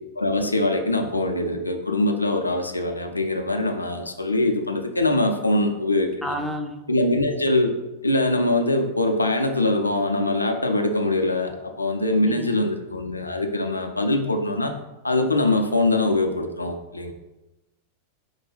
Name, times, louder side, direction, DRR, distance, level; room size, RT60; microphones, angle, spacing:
voice 1, 0.2-6.4 6.9-7.7 8.0-14.7 15.0-17.1, left 2 dB, 85° left, 4 dB, 0.4 m, -23 dB
voice 2, 6.2-6.8 12.3-12.6, equal, ahead, 4 dB, 0.5 m, -30 dB
4.7 x 2.2 x 4.5 m, 0.99 s
figure-of-eight pair, 90°, 0 cm